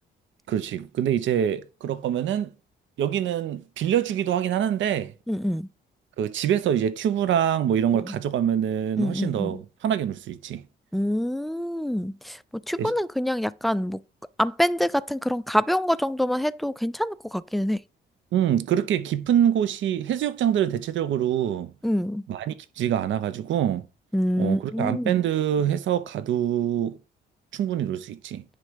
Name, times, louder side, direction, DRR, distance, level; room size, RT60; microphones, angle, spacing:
voice 1, 0.5-2.5 3.0-5.1 6.2-10.6 12.8-12.9 18.3-21.7 22.3-23.8 24.4-27.0 27.5-28.4, right 10 dB, 70° right, 0.7 m, -25 dB
voice 2, 5.3-5.7 8.0-8.1 9.0-9.6 10.9-12.4 12.7-14.0 14.4-17.8 21.8-22.2 24.1-25.2, equal, ahead, 0.3 m, -26 dB
9.7 x 3.3 x 5.1 m
cardioid pair, 90°, 20 cm